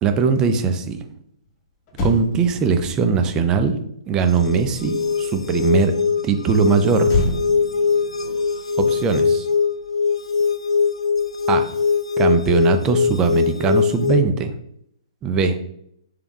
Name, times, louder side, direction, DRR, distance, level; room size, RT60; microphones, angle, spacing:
voice 1, 0.0-1.0 2.0-3.7 4.1-6.0 6.2-7.1 8.8-9.5 11.5-11.7 12.2-14.5 15.2-15.6, right 5 dB, 20° right, 7 dB, 0.4 m, -20 dB
Motor vehicle (road), 1.5-1.6 1.9-5.4 7.0-9.6 9.9-10.2, left 2 dB, 30° left, 0.8 m, -30 dB
sound 1, 4.2-14.2, left 5 dB, 80° left, 0.4 m, -21 dB
3.4 x 3.1 x 3.5 m, 0.73 s
figure-of-eight pair, 125°, 3 cm